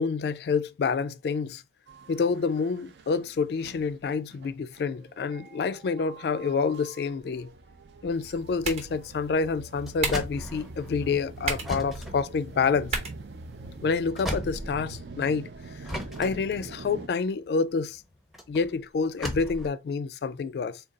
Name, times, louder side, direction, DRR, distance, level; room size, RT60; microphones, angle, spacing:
voice 1, 0.0-1.6 2.1-7.5 8.0-13.0 13.8-15.5 16.2-18.0 18.5-20.8, left 5 dB, 65° left, 0.3 m, -28 dB
sound 1, 1.9-17.1, right 3 dB, 75° right, 0.5 m, -44 dB
sound 2, 8.1-14.1, right 4 dB, 35° right, 0.8 m, -37 dB
sound 3, 8.6-15.3 15.8-19.7, equal, ahead, 0.5 m, -38 dB
3.8 x 2.3 x 3.7 m
head